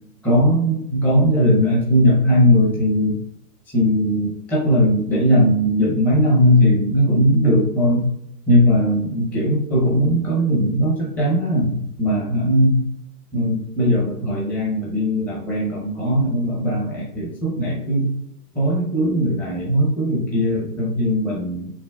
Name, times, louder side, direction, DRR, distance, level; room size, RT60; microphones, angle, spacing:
voice 1, 0.2-3.2 3.7-8.1 8.5-12.9 13.3-18.1 18.5-21.7, equal, 5° left, -7 dB, 0.6 m, -19 dB
5.9 x 3.0 x 2.2 m, 0.78 s
hypercardioid pair, 150°, 48 cm